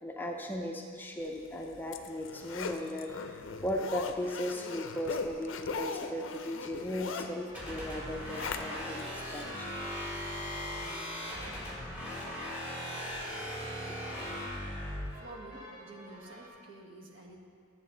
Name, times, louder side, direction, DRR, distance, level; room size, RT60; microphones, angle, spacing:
voice 1, 0.0-9.7, equal, 10° left, 1 dB, 0.5 m, -37 dB
Zipper (clothing), 1.4-9.0 9.4-9.5, left 5 dB, 65° left, 0.5 m, -39 dB
sound 1, 6.9-16.5, right 1 dB, 80° right, 2.6 m, -51 dB
sound 2, 7.5-15.1, left 1 dB, 10° right, 1.7 m, -39 dB
voice 2, 15.1-17.5, right 2 dB, 65° right, 0 dB, 1.2 m, -50 dB
10.5 x 7.3 x 3.8 m, 2.1 s
head